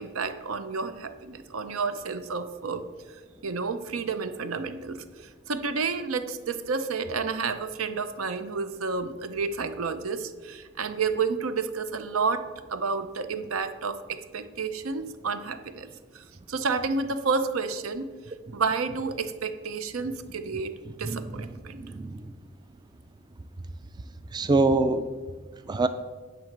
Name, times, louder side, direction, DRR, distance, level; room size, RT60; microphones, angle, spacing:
voice 1, 0.0-2.8 3.4-5.0 5.5-15.9 16.1-18.1 18.5-21.8, right 4 dB, 85° right, 10 dB, 0.7 m, -30 dB
voice 2, 21.0-21.5 21.8-22.2 24.3-25.1 25.7-25.9, right 2 dB, 20° right, 10 dB, 0.3 m, -24 dB
9.4 x 4.1 x 7.3 m, 1.4 s
head